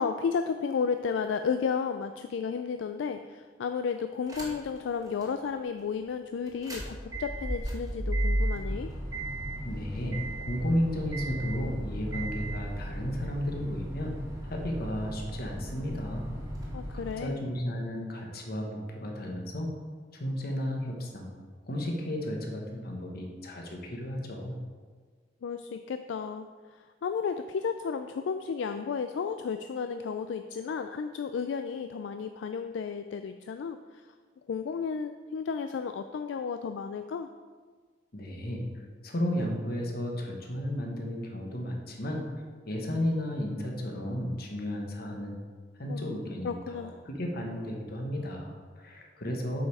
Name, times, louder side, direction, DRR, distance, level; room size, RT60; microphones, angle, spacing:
voice 1, 0.0-8.9 16.7-17.4 25.4-26.5 26.7-33.8 34.5-37.3 45.9-47.0, left 6 dB, 75° left, 8 dB, 0.3 m, -33 dB
sound 1, 4.3-4.8 5.2-5.3 6.5-17.1, right 1 dB, 20° right, 1.5 m, -35 dB
voice 2, 9.6-10.2 10.5-14.1 14.5-16.3 17.2-19.7 20.1-21.3 21.7-24.6 38.1-38.6 39.0-42.3 42.6-45.3 45.8-49.6, equal, 55° left, 1 dB, 1.3 m, -33 dB
7.6 x 5.4 x 4.7 m, 1.5 s
head